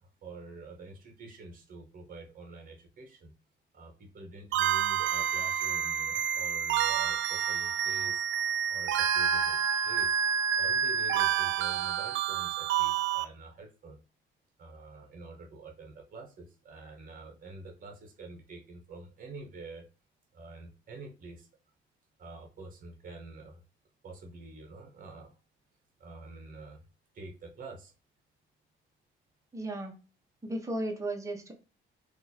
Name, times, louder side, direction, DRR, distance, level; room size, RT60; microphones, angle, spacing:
voice 1, 0.0-3.3 3.7-8.2 8.7-10.2 10.6-14.0 14.6-19.8 20.3-21.5 22.2-23.6 24.0-25.4 26.0-26.8 27.1-27.9, right 3 dB, 45° right, 4 dB, 1.1 m, -47 dB
sound 1, 4.5-13.2, right 8 dB, 75° right, 0.4 m, -28 dB
voice 2, 29.5-29.9 30.4-31.5, right 1 dB, 15° right, 1 dB, 1.1 m, -35 dB
2.9 x 2.6 x 4.1 m, 0.34 s
cardioid pair, 90°, 20 cm